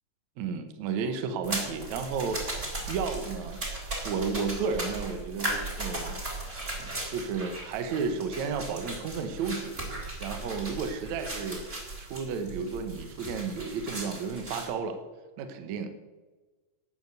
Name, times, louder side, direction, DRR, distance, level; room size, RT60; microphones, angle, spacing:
voice 1, 0.4-2.4 2.9-3.6 4.0-6.2 7.1-9.8 10.2-11.7 12.0-15.0 15.4-15.9, right 5 dB, 65° right, 7 dB, 2.3 m, -32 dB
sound 1, 1.4-14.7, right 2 dB, 20° right, 3.7 m, -37 dB
11.5 x 8.9 x 8.2 m, 1.3 s
omnidirectional pair, 3.8 m